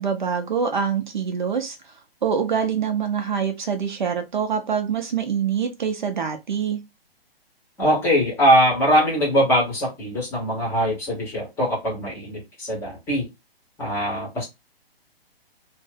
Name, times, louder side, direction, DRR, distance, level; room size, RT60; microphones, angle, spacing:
voice 1, 0.0-1.8 2.2-6.8, right 7 dB, 50° right, 0.6 m, -25 dB
voice 2, 7.8-13.3 13.8-14.4, equal, 10° left, 0.8 m, -21 dB
2.5 x 2.1 x 3.7 m
figure-of-eight pair, 130°, 31 cm